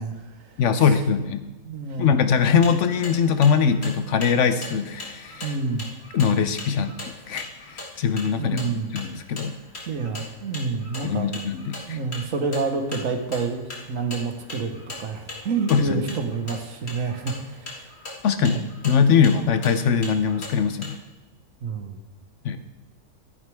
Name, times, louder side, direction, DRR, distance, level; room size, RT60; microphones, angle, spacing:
voice 1, 0.0-1.0 1.7-2.1 5.4-5.8 8.4-9.0 9.9-11.3 11.9-17.9 18.4-18.6 21.6-22.0, right 4 dB, 75° right, 6 dB, 1.5 m, -29 dB
voice 2, 0.6-1.5 2.0-5.5 6.1-8.6 8.9-9.6 11.0-12.0 15.7-16.0 18.2-21.0 22.4-22.6, left 6 dB, 70° left, 11 dB, 1.0 m, -22 dB
sound 1, 2.4-21.0, left 2 dB, 50° left, 2.1 m, -40 dB
12.5 x 10.0 x 3.4 m, 1.1 s
omnidirectional pair, 1.4 m